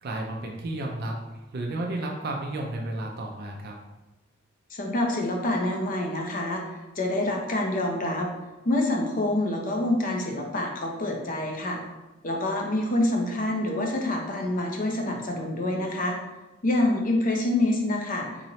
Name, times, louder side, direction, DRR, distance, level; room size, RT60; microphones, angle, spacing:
voice 1, 0.0-3.8, right 1 dB, 50° right, 1 dB, 0.4 m, -32 dB
voice 2, 4.7-6.6 7.0-8.3 8.6-11.8 12.2-16.2 16.6-18.3, left 1 dB, 40° left, 1 dB, 0.6 m, -26 dB
3.9 x 3.0 x 2.8 m, 1.0 s
head